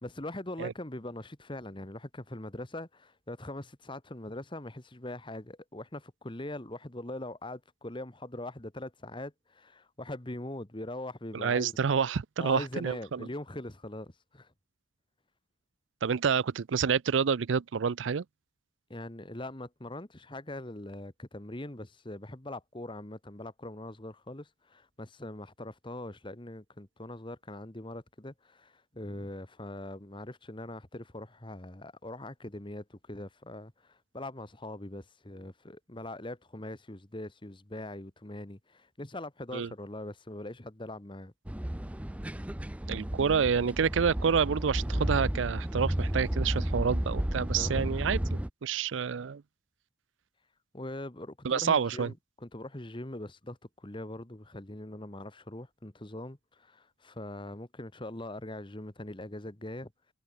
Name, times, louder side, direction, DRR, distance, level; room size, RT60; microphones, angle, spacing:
voice 1, 0.0-11.7 12.4-14.5 18.9-41.3 47.6-47.9 50.7-59.9, left 1 dB, 25° left, 1.7 m, -42 dB
voice 2, 11.3-13.3 16.0-18.2 39.5-39.7 42.9-49.4 51.4-52.1, right 6 dB, 80° right, 0.5 m, -28 dB
sound 1, 41.5-48.5, right 1 dB, 5° right, 0.5 m, -32 dB
head